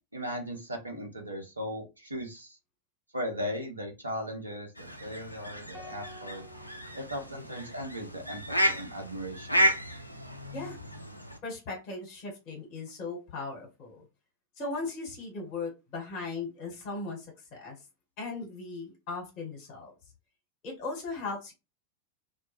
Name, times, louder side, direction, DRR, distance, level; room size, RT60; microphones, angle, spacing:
voice 1, 0.0-2.6 3.1-6.4 6.9-9.7, equal, 80° right, 2 dB, 0.6 m, -37 dB
sound 1, 4.7-11.4, right 1 dB, 90° left, 0.3 m, -32 dB
sound 2, 5.7-8.1, equal, 10° left, 0.6 m, -52 dB
voice 2, 11.4-14.0 14.6-17.8 18.2-19.9 20.6-21.5, left 3 dB, 45° left, 1 dB, 1.1 m, -38 dB
2.2 x 2.1 x 2.9 m, 0.26 s
figure-of-eight pair, 90°, 0 cm